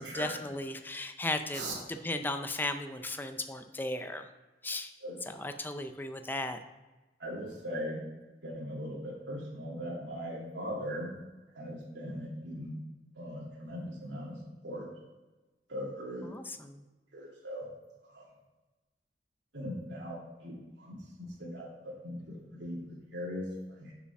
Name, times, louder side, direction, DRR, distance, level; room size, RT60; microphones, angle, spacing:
voice 1, 0.0-1.6 1.9-4.3 4.6-4.9 5.3-6.6 16.2-16.8, left 2 dB, 10° left, 7 dB, 0.5 m, -36 dB
voice 2, 7.2-8.0 8.4-11.1 11.5-12.7 13.1-14.3 14.6-14.9 15.7-16.3 17.1-17.6 18.1-18.2 19.5-20.5 20.8-22.8 23.1-23.9, equal, 80° right, -4 dB, 2.6 m, -39 dB
6.6 x 5.0 x 5.9 m, 1.1 s
head